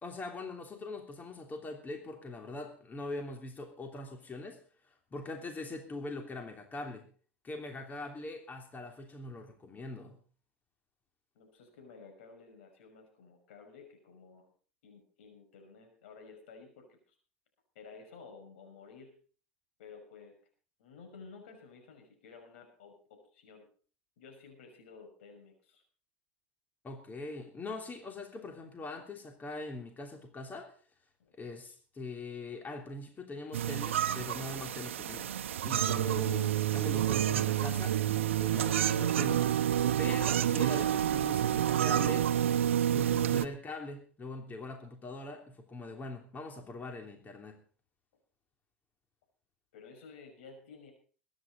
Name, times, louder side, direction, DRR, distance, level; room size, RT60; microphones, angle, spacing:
voice 1, 0.0-4.6 4.9-7.1 7.4-10.2 26.8-30.7 31.3-35.3 35.6-38.0 38.4-39.5 40.0-42.3 42.9-47.6, left 2 dB, 25° left, 3 dB, 3.1 m, -42 dB
voice 2, 11.3-14.5 14.8-17.2 17.7-19.1 19.8-20.4 20.8-23.7 24.2-25.8 31.2-31.6 49.7-50.9, left 4 dB, 75° left, 4 dB, 5.8 m, -53 dB
sound 1, 33.5-43.5, right 11 dB, 80° right, 0.8 m, -29 dB
22.5 x 10.0 x 4.1 m, 0.42 s
hypercardioid pair, 80°, 7 cm